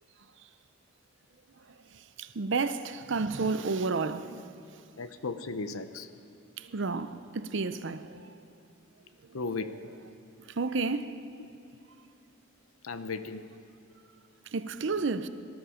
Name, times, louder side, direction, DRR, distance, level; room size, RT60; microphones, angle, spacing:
voice 1, 2.2-4.4 6.6-8.3 10.6-11.1 14.5-15.3, right 4 dB, 60° right, 0.6 m, -31 dB
voice 2, 5.0-6.1 9.3-9.8 12.8-13.4, left 4 dB, 85° left, 0.8 m, -35 dB
19.5 x 13.0 x 5.1 m
head